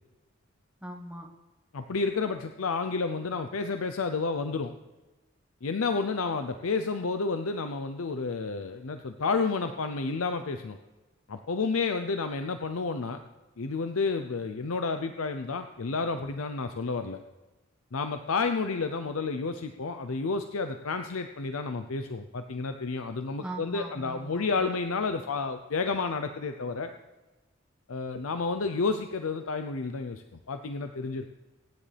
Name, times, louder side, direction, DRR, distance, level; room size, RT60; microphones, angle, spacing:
voice 1, 0.8-1.3 23.4-24.7, right 1 dB, 5° right, 0 dB, 1.1 m, -40 dB
voice 2, 1.7-4.7 5.6-10.8 11.3-13.2 13.6-17.2 17.9-26.9 27.9-31.2, left 4 dB, 90° left, 8 dB, 0.6 m, -30 dB
23.5 x 9.8 x 3.4 m, 1.1 s
head